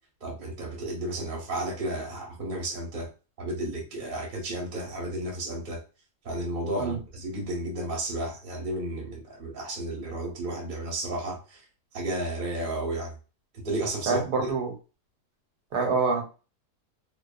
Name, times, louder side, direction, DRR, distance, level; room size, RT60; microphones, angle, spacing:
voice 1, 0.2-3.1 3.4-5.8 6.2-11.6 11.9-13.1 13.5-14.5, right 1 dB, 40° right, 1.0 m, -32 dB
voice 2, 14.1-14.7 15.7-16.3, right 4 dB, 80° right, 1.3 m, -26 dB
2.6 x 2.3 x 2.3 m
omnidirectional pair, 1.7 m